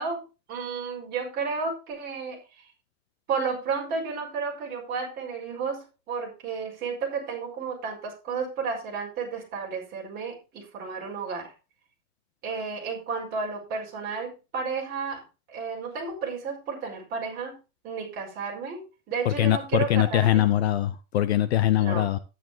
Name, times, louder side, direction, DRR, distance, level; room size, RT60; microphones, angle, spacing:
voice 1, 0.0-2.7 3.3-11.5 12.4-15.2 15.5-17.6 17.8-18.8 19.1-20.4 21.8-22.1, right 5 dB, 20° right, 5.0 m, -32 dB
voice 2, 19.2-22.2, left 12 dB, 45° left, 0.7 m, -22 dB
12.5 x 10.0 x 2.8 m
supercardioid pair, 175°, 45 cm